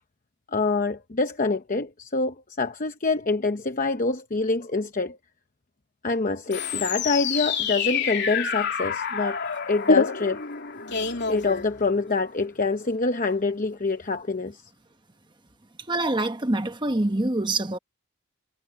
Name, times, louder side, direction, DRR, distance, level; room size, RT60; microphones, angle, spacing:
voice 1, 0.5-5.2 6.0-9.4 9.7-10.4 11.3-14.6, left 3 dB, 35° left, 0.8 m, -26 dB
sound 1, 6.5-12.2, left 5 dB, 50° left, 3.1 m, -27 dB
voice 2, 15.9-17.8, right 2 dB, 20° right, 1.1 m, -25 dB
head